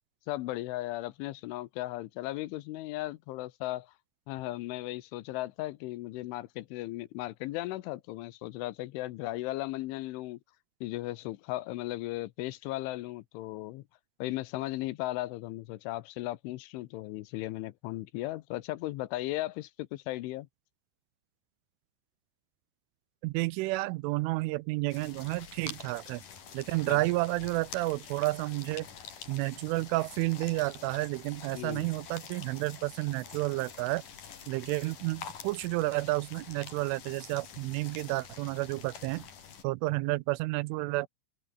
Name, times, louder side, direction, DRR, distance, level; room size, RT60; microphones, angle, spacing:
voice 1, 0.3-3.9 4.3-10.4 10.8-13.8 14.2-20.5 26.9-27.1 31.5-31.9, left 17 dB, 80° left, 3.2 m, -36 dB
voice 2, 23.2-26.2 26.5-28.9 29.3-34.0 34.5-39.2 39.6-41.1, right 21 dB, 80° right, 3.0 m, -31 dB
sound 1, 24.9-39.6, left 7 dB, 45° left, 4.2 m, -47 dB
open air
omnidirectional pair, 5.8 m